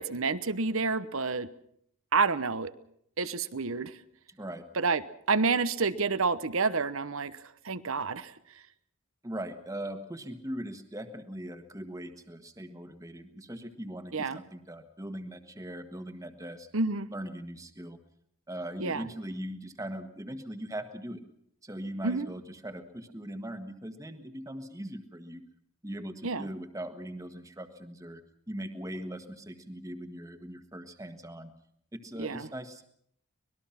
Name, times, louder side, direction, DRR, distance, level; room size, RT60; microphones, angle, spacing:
voice 1, 0.0-1.5 2.1-2.7 3.2-4.0 4.7-5.0 5.3-8.3 14.1-14.4 16.7-17.1 18.8-19.1 22.0-22.3 26.2-26.5 32.2-32.5, right 4 dB, 65° right, 15 dB, 1.0 m, -29 dB
voice 2, 4.3-4.6 9.2-16.7 17.1-18.0 18.5-21.2 21.6-25.4 25.8-31.5 31.9-32.8, right 1 dB, 15° right, 7 dB, 1.5 m, -40 dB
25.0 x 20.0 x 5.8 m, 0.69 s
head